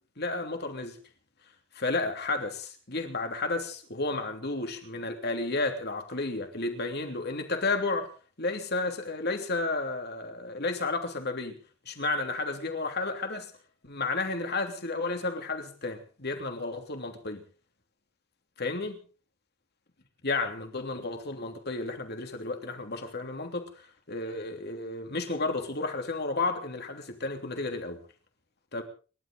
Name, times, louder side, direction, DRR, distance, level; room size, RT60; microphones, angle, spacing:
voice 1, 0.2-1.0 1.7-8.1 8.4-11.6 11.8-13.5 13.8-17.4 18.6-19.0 20.2-28.0 28.7-28.8, left 3 dB, 55° left, 3.2 m, -32 dB
30.0 x 12.0 x 3.9 m
head